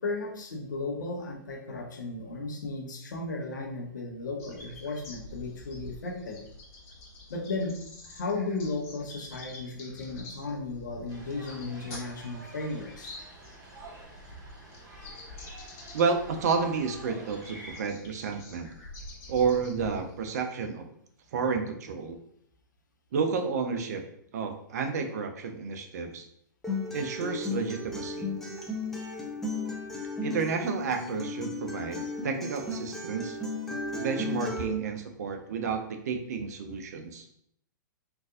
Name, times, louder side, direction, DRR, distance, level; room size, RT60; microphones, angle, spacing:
voice 1, 0.0-6.4 7.3-7.8 8.0-13.1, left 3 dB, 65° left, 1 dB, 0.8 m, -35 dB
sound 1, 4.4-20.3, left 2 dB, 40° left, 1.0 m, -48 dB
sound 2, 11.1-17.8, right 2 dB, 35° right, 1.3 m, -48 dB
voice 2, 15.9-18.7 19.3-20.9 21.3-22.2 23.1-24.0 24.3-26.3 26.9-28.3 30.2-33.4 34.0-37.3, right 5 dB, 55° right, 6 dB, 0.5 m, -31 dB
Acoustic guitar, 26.6-34.6, left 2 dB, 5° left, 0.6 m, -35 dB
3.7 x 2.5 x 2.4 m, 0.70 s
figure-of-eight pair, 110°, 11 cm